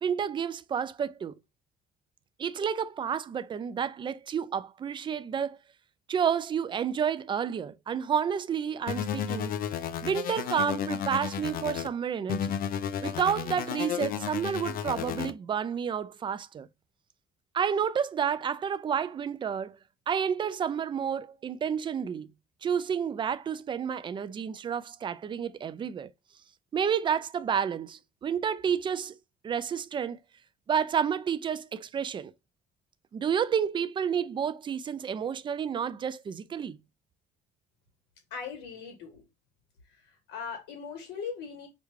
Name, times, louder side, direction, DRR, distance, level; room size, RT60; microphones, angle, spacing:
voice 1, 0.0-1.3 2.4-5.6 6.1-9.5 10.0-12.6 13.0-16.7 17.5-19.8 20.1-22.3 22.6-26.1 26.7-29.2 29.4-30.2 30.7-32.3 33.1-36.8, right 7 dB, 30° right, 0.3 m, -30 dB
sound 1, 8.9-11.9 12.3-15.3, left 8 dB, 60° left, 0.5 m, -33 dB
voice 2, 38.3-39.2 39.8-41.7, left 6 dB, 80° left, 1.2 m, -40 dB
4.9 x 2.1 x 3.1 m
cardioid pair, 110°, 17 cm